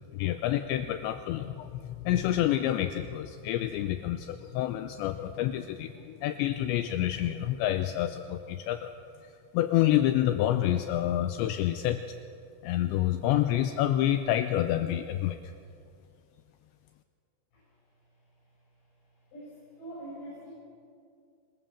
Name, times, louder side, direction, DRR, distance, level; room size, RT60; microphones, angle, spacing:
voice 1, 0.1-8.9 9.5-12.0 12.6-15.4, left 12 dB, 80° left, 9 dB, 2.9 m, -28 dB
voice 2, 19.3-20.5, right 1 dB, 65° left, -6 dB, 9.1 m, -43 dB
27.0 x 22.0 x 7.4 m, 2.4 s
omnidirectional pair, 5.5 m